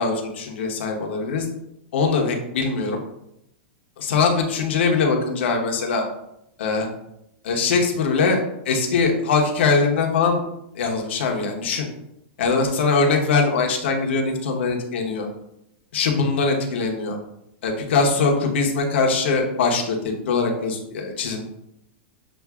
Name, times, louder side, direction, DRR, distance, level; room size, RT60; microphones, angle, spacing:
voice 1, 0.0-1.5 1.9-3.0 4.0-6.0 6.6-6.9 7.4-10.4 10.7-11.9 12.4-15.3 15.9-17.2 17.6-21.4, left 4 dB, 80° left, 2 dB, 1.0 m, -22 dB
6.9 x 2.6 x 2.4 m, 0.81 s
supercardioid pair, 155°, 6 cm